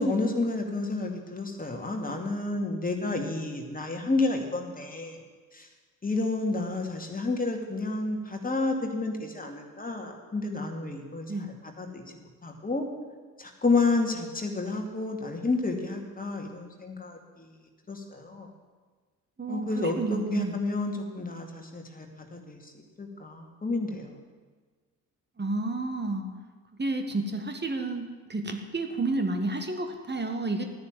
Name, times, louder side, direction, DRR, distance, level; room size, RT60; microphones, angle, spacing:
voice 1, 0.0-5.2 6.0-11.3 11.8-12.0 12.4-12.8 13.4-17.2 17.9-18.5 19.5-22.1 22.5-22.6 23.0-24.1, left 3 dB, 20° left, 2 dB, 2.5 m, -30 dB
voice 2, 19.4-20.6 25.4-26.3 26.8-30.6, right 2 dB, 20° right, 5 dB, 1.8 m, -30 dB
14.5 x 9.7 x 7.5 m, 1.4 s
figure-of-eight pair, 45°, 47 cm